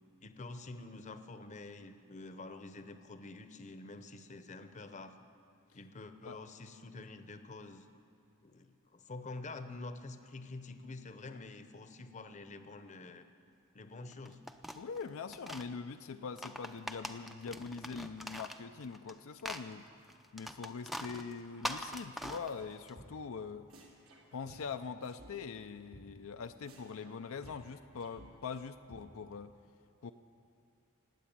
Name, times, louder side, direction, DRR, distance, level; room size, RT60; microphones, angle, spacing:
voice 1, 0.2-5.2 5.7-7.9 8.4-13.3 13.7-14.4, left 2 dB, 35° left, 9 dB, 0.8 m, -47 dB
sound 1, 14.1-15.7 16.2-19.1 19.4-22.9, equal, ahead, 0.5 m, -43 dB
voice 2, 14.7-19.9 20.3-23.7 24.3-29.6 30.0-30.1, left 5 dB, 75° left, 8 dB, 0.5 m, -43 dB
sound 2, 22.2-22.7 23.0-23.4 23.7-25.3 25.6-25.7 25.9-26.0 26.3-26.4 26.7-28.6 28.9-29.0, right 1 dB, 80° right, 2.9 m, -56 dB
18.5 x 8.3 x 8.7 m, 2.4 s
head